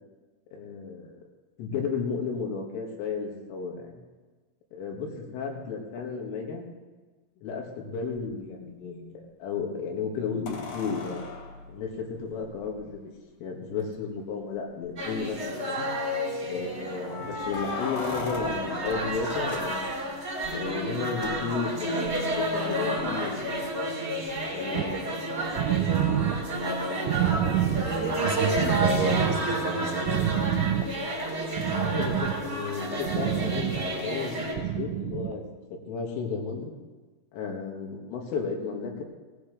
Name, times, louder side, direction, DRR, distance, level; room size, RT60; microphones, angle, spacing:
voice 1, 0.5-1.2 1.6-4.0 4.7-6.6 7.4-11.2 11.7-13.0 13.4-15.9 16.5-19.9 20.5-23.7 24.3-25.0 31.7-35.4 35.9-36.7 37.3-39.0, left 5 dB, 80° left, 1 dB, 4.4 m, -33 dB
sound 1, 8.2-8.3 10.5-12.8 13.8-13.9 14.2-14.3 14.8-15.3 17.0-20.2 22.7-22.8, left 4 dB, 55° left, 2.5 m, -38 dB
sound 2, 15.0-34.5, equal, 20° right, 1.7 m, -31 dB
sound 3, 24.8-35.5, right 11 dB, 90° right, 3.3 m, -29 dB
voice 2, 27.7-30.5, right 5 dB, 65° right, -2 dB, 3.0 m, -31 dB
18.0 x 15.5 x 3.3 m, 1.3 s
omnidirectional pair, 5.7 m